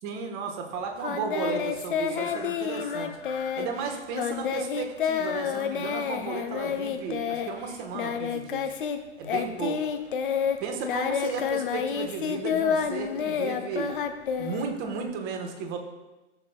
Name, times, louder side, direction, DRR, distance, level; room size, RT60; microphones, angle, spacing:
voice 1, 0.0-3.2 3.5-8.7 9.2-9.8 10.6-13.9 14.4-15.8, right 5 dB, 25° right, 3 dB, 1.1 m, -34 dB
Singing, 1.0-9.0 9.2-15.1, left 7 dB, 45° left, 0.7 m, -29 dB
14.5 x 7.2 x 2.2 m, 1.1 s
figure-of-eight pair, 115°, 36 cm